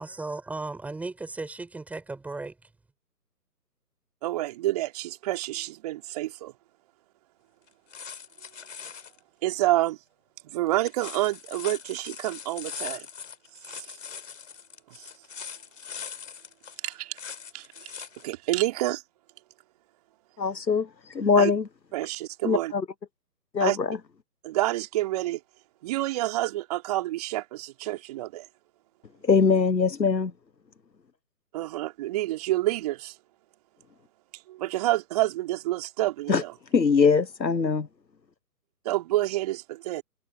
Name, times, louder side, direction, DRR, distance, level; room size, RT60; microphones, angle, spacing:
voice 1, 0.0-2.5, right 3 dB, 5° right, 5.4 m, -36 dB
voice 2, 4.2-6.5 9.4-10.0 10.4-13.1 13.8-14.0 14.9-15.1 16.8-17.2 17.5-18.0 18.2-19.0 21.4-21.5 21.9-22.7 23.6-23.8 24.4-25.4 25.8-28.5 31.5-33.2 34.5-36.5 38.9-40.0, right 16 dB, 25° right, 3.5 m, -28 dB
sound 1, 7.7-9.2 10.7-18.3 18.6-18.7, left 7 dB, 50° left, 5.8 m, -41 dB
voice 3, 20.4-21.6 22.4-22.8 23.5-24.0 29.3-30.3 36.3-36.4 36.7-37.9, left 5 dB, 90° left, 1.3 m, -22 dB
figure-of-eight pair, 150°, 49 cm